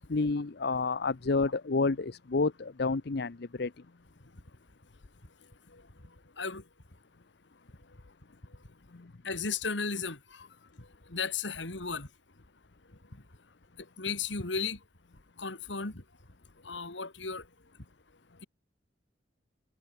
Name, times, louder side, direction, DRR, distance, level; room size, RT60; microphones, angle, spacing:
voice 1, 0.1-3.7 9.0-9.1, left 3 dB, 60° left, 0.7 m, -29 dB
voice 2, 9.2-10.4 10.8-12.1 14.0-14.8 15.4-16.0 16.6-17.4, left 5 dB, 80° left, 2.7 m, -35 dB
head